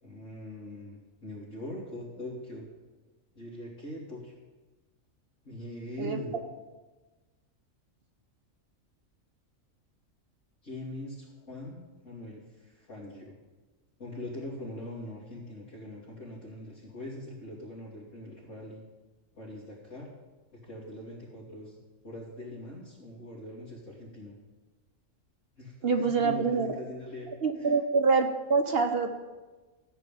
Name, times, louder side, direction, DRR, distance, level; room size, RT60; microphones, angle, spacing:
voice 1, 0.0-2.7 3.3-4.4 5.4-6.4 10.6-13.3 14.0-18.8 19.3-20.1 20.5-21.8 22.0-24.4 25.6-27.7, left 1 dB, 70° left, -7 dB, 3.1 m, -42 dB
voice 2, 25.8-26.7 27.4-29.1, right 4 dB, 50° right, 6 dB, 1.1 m, -25 dB
14.0 x 6.2 x 9.1 m, 1.2 s
omnidirectional pair, 1.4 m